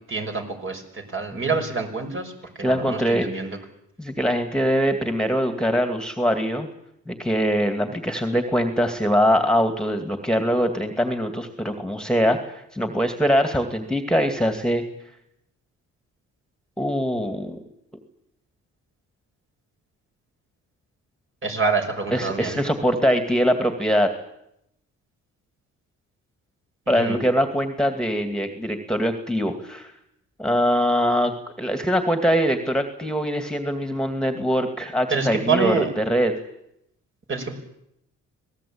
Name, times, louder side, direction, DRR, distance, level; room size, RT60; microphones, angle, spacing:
voice 1, 0.1-2.3 2.6-3.6 21.4-22.6 27.0-27.2 35.1-35.9 37.3-37.5, right 4 dB, 40° right, 4 dB, 5.9 m, -26 dB
voice 2, 2.6-3.5 4.0-6.7 7.1-12.4 12.7-14.8 16.8-17.6 22.1-24.1 26.9-29.9 30.4-31.3 31.6-36.4, equal, ahead, 7 dB, 2.4 m, -22 dB
26.0 x 18.5 x 8.8 m, 0.80 s
cardioid pair, 90°, 30 cm